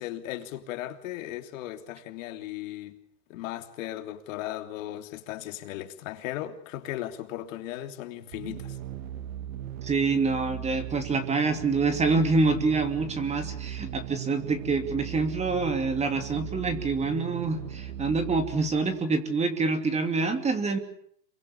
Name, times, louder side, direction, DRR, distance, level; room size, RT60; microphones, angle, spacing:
voice 1, 0.0-3.0 3.3-8.8, left 13 dB, 50° left, 3.3 m, -37 dB
sound 1, 8.3-19.0, right 10 dB, 50° right, 2.6 m, -38 dB
voice 2, 9.8-20.8, right 3 dB, 15° right, 2.9 m, -26 dB
28.0 x 23.5 x 7.2 m
supercardioid pair, 150°, 49 cm